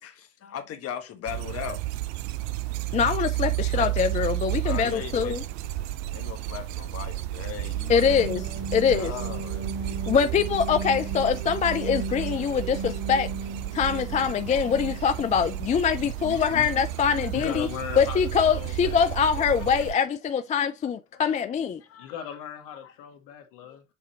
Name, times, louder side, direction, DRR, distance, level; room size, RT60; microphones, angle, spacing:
voice 1, 0.0-1.8 3.7-3.9 4.6-5.4 6.1-8.3 8.9-10.1 14.3-14.4 17.2-17.3 19.6-19.8 21.1-21.2 21.8-22.4 22.8-22.9 23.6-23.8, left 9 dB, 35° left, 1.3 m, -39 dB
sound 1, 1.3-19.9, right 15 dB, 55° right, 0.6 m, -32 dB
voice 2, 2.9-5.4 7.9-8.4 8.7-9.1 10.1-13.3 13.7-17.7 18.0-21.8, left 7 dB, 20° left, 0.4 m, -24 dB
sound 2, 7.7-15.5, right 2 dB, 25° right, 1.7 m, -37 dB
voice 3, 16.0-16.7 17.3-19.7 22.0-23.8, left 9 dB, 55° left, 1.9 m, -38 dB
7.6 x 2.8 x 4.4 m
hypercardioid pair, 80°, 39 cm